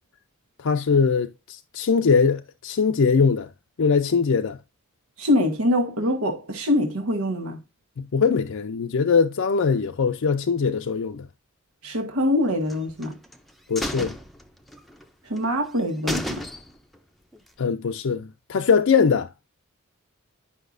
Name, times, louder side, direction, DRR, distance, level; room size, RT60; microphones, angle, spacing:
voice 1, 0.6-3.5 3.8-4.6 8.0-11.3 13.7-14.2 17.6-19.3, left 5 dB, 65° left, 0.5 m, -21 dB
voice 2, 5.2-7.6 11.8-13.2 15.2-16.4, left 1 dB, 80° right, 1.6 m, -24 dB
sound 1, 12.7-13.4 13.8-15.0 15.4-15.5 15.8-15.9 16.1-17.0 17.3-17.4, equal, ahead, 0.6 m, -32 dB
9.9 x 5.6 x 2.6 m
head